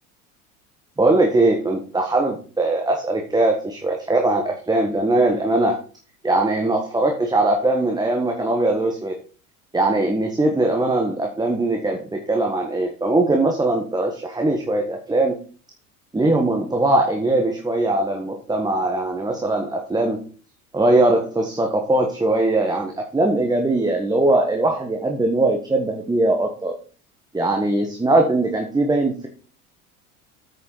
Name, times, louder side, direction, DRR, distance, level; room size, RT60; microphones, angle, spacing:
voice 1, 1.0-5.8 6.2-9.2 9.7-15.4 16.1-20.2 20.7-26.7 27.3-29.3, right 2 dB, 10° right, 2 dB, 1.5 m, -20 dB
8.9 x 6.7 x 4.9 m, 0.40 s
figure-of-eight pair, 70°, 45 cm